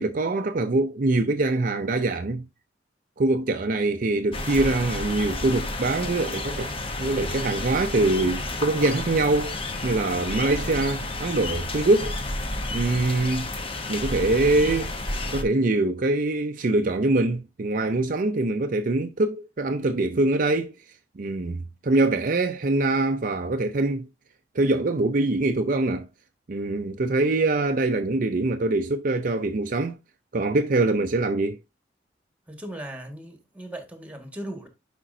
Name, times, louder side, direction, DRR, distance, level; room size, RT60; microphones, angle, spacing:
voice 1, 0.0-2.5 3.2-9.6 9.8-12.1 12.7-13.5 13.9-14.9 15.3-20.7 21.2-24.1 24.5-26.1 26.5-30.0 30.3-31.6, right 2 dB, 45° right, 0.5 m, -24 dB
sound 1, 4.3-15.4, left 2 dB, 30° left, 0.9 m, -31 dB
voice 2, 32.5-34.7, right 1 dB, 10° right, 1.7 m, -38 dB
9.9 x 5.1 x 2.7 m
head